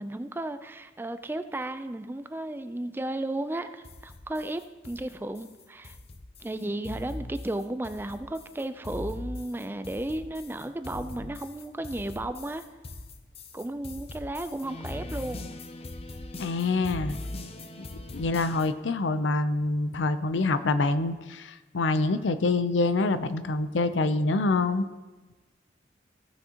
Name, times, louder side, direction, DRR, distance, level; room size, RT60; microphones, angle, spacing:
voice 1, 0.0-6.0 6.4-12.6 13.5-15.5, right 1 dB, 10° right, 10 dB, 0.3 m, -34 dB
sound 1, 3.8-18.7, left 2 dB, 35° left, 0.6 m, -41 dB
voice 2, 16.4-17.2 18.1-24.9, left 3 dB, 90° left, 12 dB, 0.5 m, -26 dB
15.0 x 6.3 x 2.9 m, 1.3 s
head